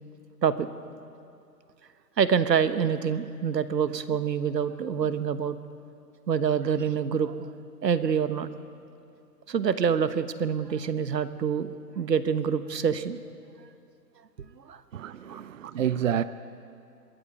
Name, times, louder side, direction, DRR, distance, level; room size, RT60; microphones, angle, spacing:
voice 1, 2.2-5.6 6.3-7.5 7.8-8.5 9.5-13.2 14.7-14.8 15.3-15.4, right 7 dB, 85° right, 1.3 m, -26 dB
voice 2, 14.9-16.2, right 9 dB, 50° right, 0.6 m, -28 dB
24.5 x 13.5 x 8.4 m
hypercardioid pair, 155°, 49 cm